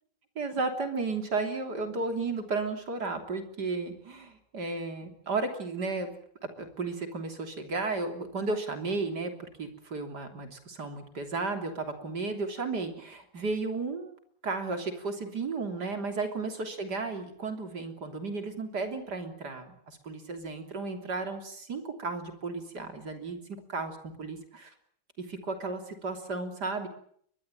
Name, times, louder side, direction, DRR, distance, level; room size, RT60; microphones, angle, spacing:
voice 1, 0.4-6.1 6.4-9.3 9.6-14.1 14.4-23.4 23.7-24.7 25.2-26.9, right 3 dB, 60° right, 6 dB, 3.9 m, -34 dB
23.0 x 20.5 x 9.1 m, 0.64 s
omnidirectional pair, 2.0 m